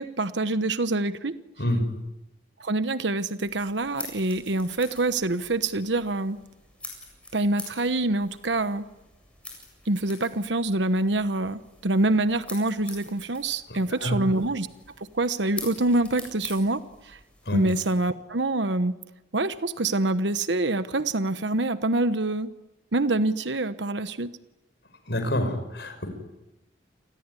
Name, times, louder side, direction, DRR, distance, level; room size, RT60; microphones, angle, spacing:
voice 1, 0.0-1.3 2.6-6.4 7.3-8.8 9.9-14.7 15.1-17.2 17.5-19.0 19.3-22.5 22.9-24.3, right 2 dB, 75° right, 12 dB, 1.1 m, -25 dB
sound 1, 3.4-18.0, left 2 dB, 5° left, 7.6 m, -45 dB
voice 2, 13.7-14.2 17.5-17.6 25.1-26.1, left 1 dB, 65° left, 8 dB, 6.0 m, -27 dB
29.0 x 20.5 x 9.9 m, 0.98 s
head